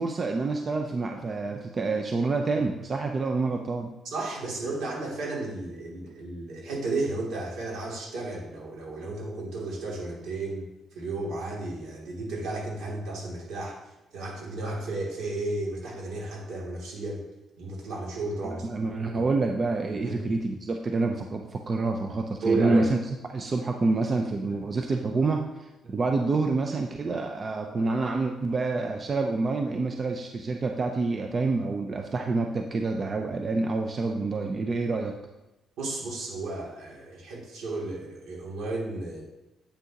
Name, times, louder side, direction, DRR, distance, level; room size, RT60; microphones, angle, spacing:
voice 1, 0.0-3.9 18.4-23.0 23.3-35.1, right 3 dB, 40° right, 3 dB, 0.6 m, -27 dB
voice 2, 4.0-10.6 10.9-17.2 17.6-18.7 19.1-19.2 20.0-20.3 22.4-22.8 35.8-39.2, right 2 dB, 80° right, -4 dB, 2.6 m, -33 dB
8.2 x 6.2 x 2.9 m, 0.98 s
cardioid pair, 90°, 0 cm